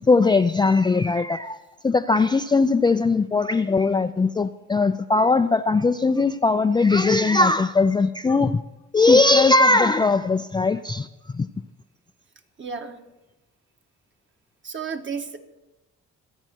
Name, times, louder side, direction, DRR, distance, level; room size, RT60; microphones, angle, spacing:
voice 1, 0.0-1.6 1.8-8.6 8.9-11.5, left 3 dB, 15° left, 8 dB, 0.3 m, -19 dB
voice 2, 12.6-13.0 14.6-15.4, right 5 dB, 40° right, 5 dB, 1.5 m, -32 dB
23.5 x 9.0 x 4.5 m, 1.0 s
cardioid pair, 90°, 30 cm